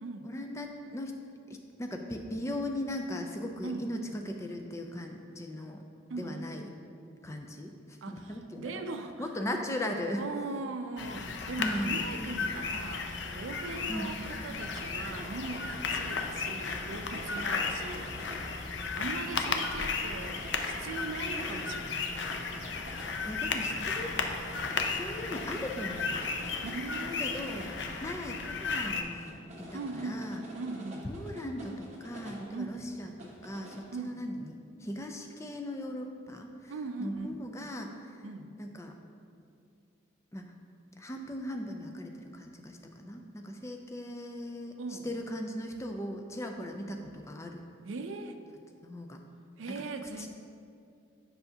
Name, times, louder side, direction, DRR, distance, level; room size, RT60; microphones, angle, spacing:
voice 1, 0.2-1.1 1.5-5.8 6.2-6.7 7.2-8.8 9.2-10.3 11.6-12.0 13.9-14.2 23.3-24.1 24.9-26.4 27.2-27.6 28.0-30.4 31.0-34.5 34.8-36.7 37.0-38.3 38.6-39.0 40.3-40.5 41.0-44.8 45.0-47.6 48.8-49.2 49.7-49.8 50.2-50.3, left 1 dB, 15° left, 3 dB, 0.4 m, -38 dB
voice 2, 6.1-6.5 8.0-9.2 10.2-18.2 18.9-22.2 26.6-27.6 29.7-30.3 30.6-31.1 32.5-32.8 33.9-34.2 36.7-37.4 38.2-38.5 44.8-45.1 47.8-48.4 49.6-50.3, right 3 dB, 85° right, 7 dB, 0.5 m, -40 dB
sound 1, 11.0-29.0, left 4 dB, 65° left, 0.5 m, -34 dB
sound 2, 14.4-33.8, equal, 35° right, 0.9 m, -48 dB
7.9 x 5.6 x 2.8 m, 2.4 s
head